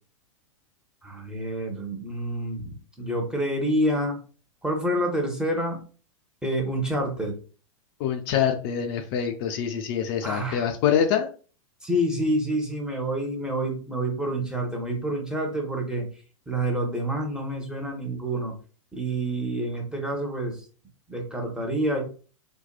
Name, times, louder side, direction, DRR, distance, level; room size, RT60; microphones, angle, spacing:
voice 1, 1.0-4.2 4.6-5.8 6.4-7.3 10.2-10.6 11.8-16.1 16.5-18.5 18.9-20.6 21.1-22.0, right 1 dB, 5° right, 0 dB, 0.7 m, -28 dB
voice 2, 8.0-11.3, left 8 dB, 45° left, 5 dB, 0.4 m, -25 dB
2.7 x 2.2 x 2.3 m, 0.38 s
hypercardioid pair, 100°, 17 cm